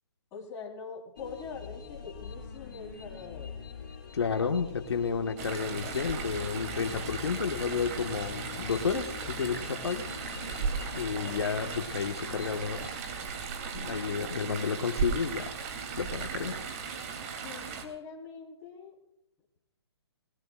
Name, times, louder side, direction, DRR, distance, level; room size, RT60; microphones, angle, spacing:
voice 1, 0.3-3.6 17.3-19.0, left 5 dB, 20° left, -1 dB, 4.1 m, -43 dB
sound 1, 1.2-12.9, left 6 dB, 45° left, 6.1 m, -44 dB
voice 2, 4.1-10.1 10.9-12.9 13.7-15.5 16.0-16.6, left 6 dB, 70° left, 4 dB, 1.6 m, -31 dB
Chatter / Stream, 5.4-17.8, right 5 dB, 35° right, 3.0 m, -37 dB
28.0 x 19.0 x 2.5 m, 0.81 s
hypercardioid pair, 145°, 14 cm